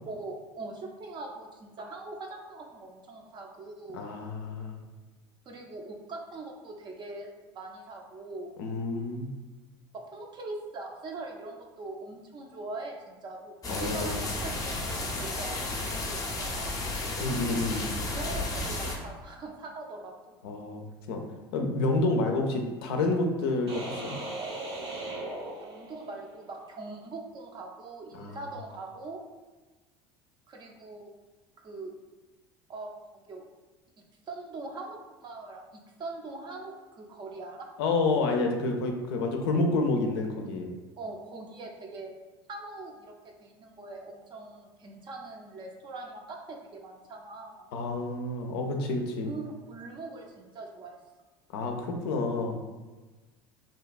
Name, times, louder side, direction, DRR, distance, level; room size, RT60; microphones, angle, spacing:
voice 1, 0.1-4.0 5.5-8.5 9.9-16.9 18.1-20.4 25.6-29.2 30.5-31.1 31.6-31.9 32.7-33.4 34.3-35.6 36.0-37.7 41.0-42.1 42.5-43.1 43.4-47.7 49.3-51.0, right 3 dB, 35° right, 1 dB, 0.5 m, -42 dB
voice 2, 3.9-4.8 8.6-9.3 13.7-14.2 17.2-17.9 20.4-21.2 21.5-24.1 28.1-28.4 37.8-40.7 47.7-49.3 51.5-52.6, left 2 dB, 70° left, 3 dB, 0.4 m, -29 dB
sound 1, 13.6-19.0, left 2 dB, 25° left, 0.6 m, -33 dB
sound 2, 23.7-26.3, right 2 dB, 85° right, 0.7 m, -38 dB
2.7 x 2.2 x 2.4 m, 1.2 s
hypercardioid pair, 75°, 13 cm